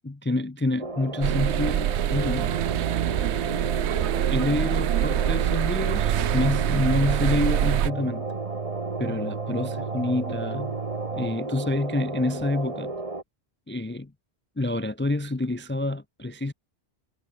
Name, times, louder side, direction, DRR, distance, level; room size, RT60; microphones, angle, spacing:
voice 1, 0.0-2.6 4.3-8.3 9.0-10.7 11.1-12.9 13.7-14.1 14.6-16.5, left 2 dB, 15° left, 0.4 m, -27 dB
sound 1, 0.8-13.2, right 2 dB, 30° right, 2.2 m, -33 dB
sound 2, 1.2-7.9, right 13 dB, 85° right, 0.9 m, -25 dB
sound 3, 5.8-11.4, right 7 dB, 55° right, 1.0 m, -35 dB
omnidirectional pair, 1.1 m